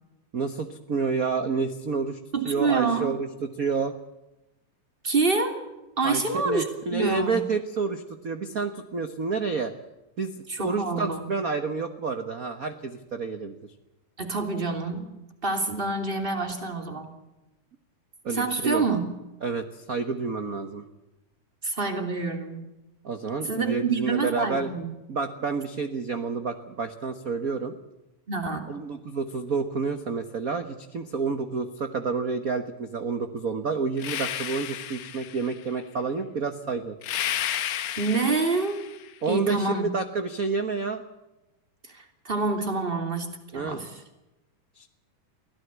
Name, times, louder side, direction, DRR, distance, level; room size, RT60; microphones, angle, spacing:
voice 1, 0.3-2.2 2.4-3.9 6.0-9.7 10.2-13.7 18.2-18.8 19.4-20.9 23.0-24.7 25.1-27.7 28.7-37.0 39.2-41.0 43.5-43.8 44.7-44.9, right 4 dB, 45° right, 8 dB, 1.1 m, -29 dB
voice 2, 2.3-3.1 5.0-5.6 6.0-7.4 10.5-11.3 14.2-15.1 15.4-17.1 18.3-19.0 21.6-22.6 23.4-24.9 28.3-28.7 38.0-38.8 39.3-39.9 41.9-43.3 43.5-44.0, right 3 dB, 20° right, 6 dB, 2.9 m, -27 dB
sound 1, 34.0-35.6 37.0-39.1, left 11 dB, 85° left, 2.7 m, -32 dB
23.5 x 17.0 x 8.2 m, 0.99 s
omnidirectional pair, 3.3 m